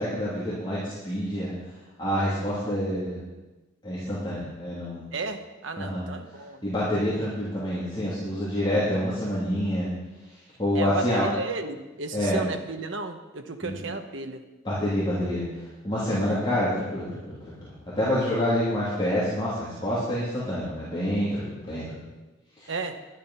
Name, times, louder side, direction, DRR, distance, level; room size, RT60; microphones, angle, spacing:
voice 1, 0.0-1.5 2.0-3.2 3.8-5.1 5.8-6.0 6.6-9.9 10.6-11.3 12.1-12.4 13.6-13.8 14.6-15.4 15.8-17.7 18.0-21.9 22.6-22.7, equal, 25° left, -9 dB, 3.2 m, -27 dB
voice 2, 5.1-6.6 10.7-14.4 16.1-16.4 22.7-23.0, right 3 dB, 60° right, 6 dB, 1.0 m, -34 dB
12.0 x 10.5 x 5.7 m, 1.1 s
head